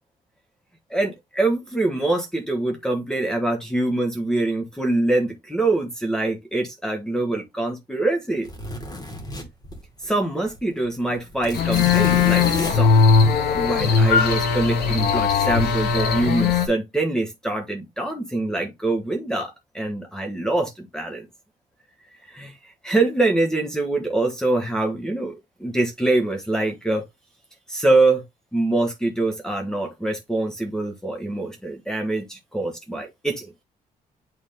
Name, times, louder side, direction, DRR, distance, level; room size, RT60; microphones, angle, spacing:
voice 1, 0.9-8.5 10.0-13.0 13.5-21.2 22.2-25.3 25.6-27.0 27.7-28.2 28.5-33.5, right 2 dB, 5° left, 1.2 m, -24 dB
sound 1, 8.4-10.2 10.5-10.6 10.8-13.9 15.3-15.9 16.2-16.5, left 1 dB, 25° left, 2.2 m, -32 dB
sound 2, 11.5-16.7, left 5 dB, 85° left, 2.3 m, -19 dB
8.9 x 3.6 x 3.5 m
cardioid pair, 150°, 16 cm